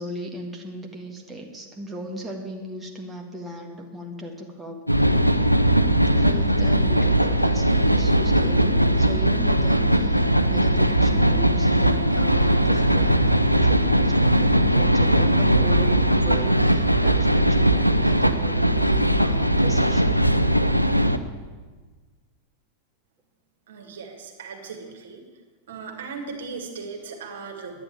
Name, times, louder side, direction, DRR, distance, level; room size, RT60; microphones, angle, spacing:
voice 1, 0.0-4.8 6.1-20.2, equal, 10° right, 1 dB, 1.7 m, -37 dB
sound 1, 4.9-21.2, right 1 dB, 90° right, 0.6 m, -19 dB
voice 2, 23.7-25.2 25.7-27.8, right 4 dB, 60° right, 3 dB, 2.3 m, -37 dB
10.5 x 10.5 x 8.7 m, 1.4 s
figure-of-eight pair, 90°, 0 cm